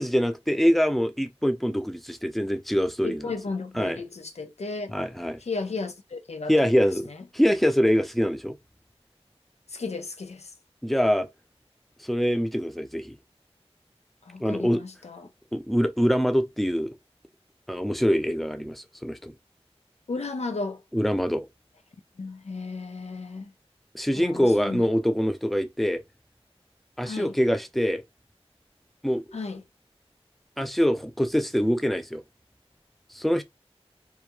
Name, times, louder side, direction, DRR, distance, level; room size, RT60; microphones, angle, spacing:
voice 1, 0.0-3.3 3.8-4.0 4.9-5.4 6.5-8.5 10.8-11.3 12.0-13.2 14.4-14.8 15.5-16.9 17.7-19.3 20.9-21.5 23.9-26.0 27.0-28.0 29.0-29.2 30.6-32.2 33.1-33.4, equal, ahead, 0.4 m, -24 dB
voice 2, 3.0-5.0 5.4-6.5 7.1-7.2 9.7-10.5 14.2-15.3 20.1-20.8 22.2-23.5 24.2-24.9 27.0-27.4 29.3-29.6, left 3 dB, 85° left, 0.5 m, -34 dB
2.3 x 2.1 x 2.9 m
wide cardioid pair, 40°, 11 cm